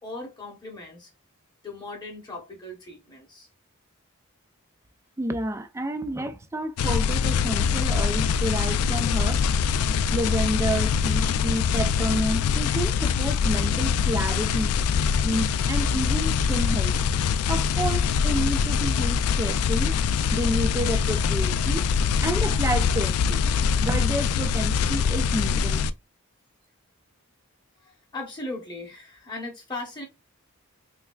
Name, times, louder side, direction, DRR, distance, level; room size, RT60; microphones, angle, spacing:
voice 1, 0.0-1.1 1.6-3.5 27.8-30.0, left 2 dB, 20° left, 0.9 m, -38 dB
voice 2, 5.2-9.4 10.1-14.7 15.2-17.0 17.5-19.9 20.3-21.9 22.2-23.4 23.8-25.8, right 1 dB, 10° right, 0.3 m, -30 dB
sound 1, 6.8-25.9, left 6 dB, 80° left, 0.3 m, -23 dB
3.4 x 3.2 x 2.2 m
head